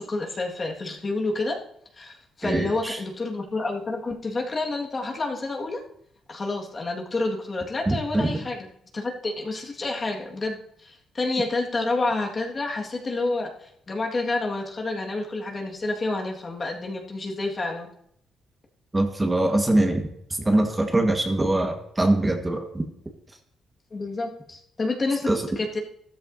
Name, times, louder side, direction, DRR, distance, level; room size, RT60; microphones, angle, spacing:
voice 1, 0.0-1.6 2.0-5.8 6.3-17.9 23.9-25.8, left 2 dB, 35° left, 0 dB, 1.7 m, -29 dB
voice 2, 2.4-3.0 7.9-8.3 18.9-20.1 20.4-22.8 25.3-25.4, right 1 dB, 15° right, 4 dB, 1.4 m, -23 dB
13.5 x 13.0 x 2.7 m, 0.72 s
cardioid pair, 90°, 0 cm